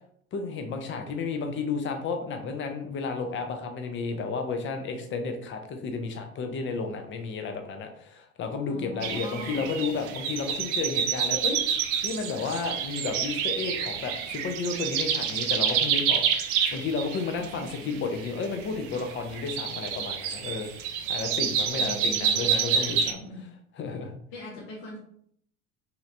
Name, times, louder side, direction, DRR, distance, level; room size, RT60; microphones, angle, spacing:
voice 1, 0.3-11.6 12.0-20.7 21.1-23.2 23.8-24.2, left 4 dB, 30° left, 5 dB, 0.6 m, -32 dB
voice 2, 8.7-9.6 17.4-18.0 21.8-22.5 23.1-23.4 24.3-25.0, left 2 dB, 50° left, -4 dB, 1.0 m, -42 dB
sound 1, 9.0-23.1, right 7 dB, 50° right, 0.5 m, -28 dB
3.1 x 2.8 x 2.5 m, 0.65 s
figure-of-eight pair, 70°, 41 cm